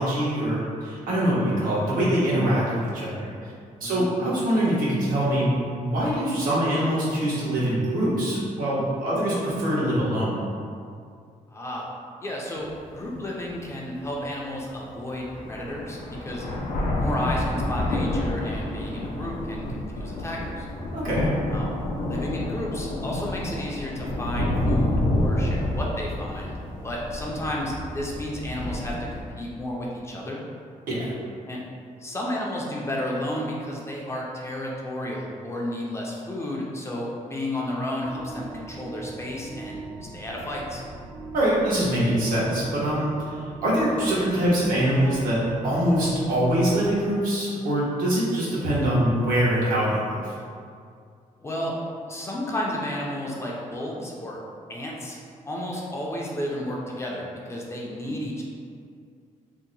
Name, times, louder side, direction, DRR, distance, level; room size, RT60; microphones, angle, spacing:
voice 1, 0.0-3.5 3.8-10.4 20.9-21.4 30.9-31.1 41.3-50.3, right 1 dB, 85° right, -7 dB, 1.0 m, -24 dB
voice 2, 11.5-11.8 12.2-12.7 12.9-16.4 16.9-20.7 21.5-21.7 22.1-26.6 26.8-30.4 31.5-31.6 32.0-39.9 40.1-40.8 51.4-51.7 52.1-54.4 54.7-55.2 55.5-58.4, left 1 dB, 20° left, -3 dB, 0.4 m, -32 dB
sound 1, 12.7-12.8 13.4-13.5 14.8-14.9 15.2-29.2, left 1 dB, 75° left, 0.5 m, -29 dB
sound 2, 38.0-47.1, right 2 dB, 50° right, 0.6 m, -42 dB
2.8 x 2.1 x 3.8 m, 2.3 s
cardioid pair, 150°, 14 cm